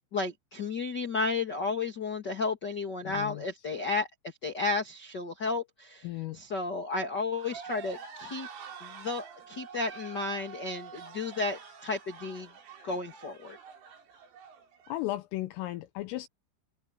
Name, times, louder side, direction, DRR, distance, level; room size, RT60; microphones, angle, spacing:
voice 1, 0.1-4.1 4.4-6.1 6.3-8.5 8.8-12.5 12.8-13.6, left 3 dB, 45° left, 1.4 m, -33 dB
voice 2, 3.0-3.4 6.0-6.4 14.9-16.3, left 16 dB, 80° left, 3.6 m, -35 dB
sound 1, 7.4-14.9, right 6 dB, 70° right, 6.9 m, -47 dB
omnidirectional pair, 5.9 m